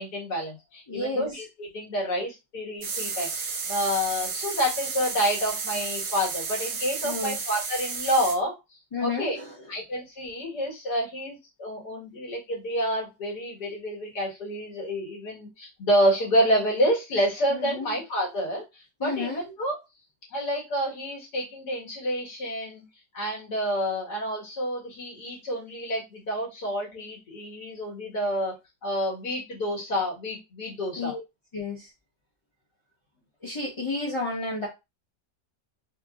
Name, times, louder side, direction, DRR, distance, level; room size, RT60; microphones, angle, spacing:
voice 1, 0.0-9.4 9.7-19.8 20.3-22.8 23.1-28.5 28.8-31.1, equal, 65° left, -3 dB, 2.3 m, -28 dB
voice 2, 0.9-1.4 7.0-7.4 8.9-9.7 17.5-17.9 19.0-19.4 31.0-31.2 31.5-31.9 33.4-34.7, left 3 dB, 30° left, -4 dB, 0.5 m, -32 dB
sound 1, 2.8-8.4, right 5 dB, 55° right, 1.0 m, -32 dB
4.3 x 2.6 x 2.4 m, 0.23 s
omnidirectional pair, 1.9 m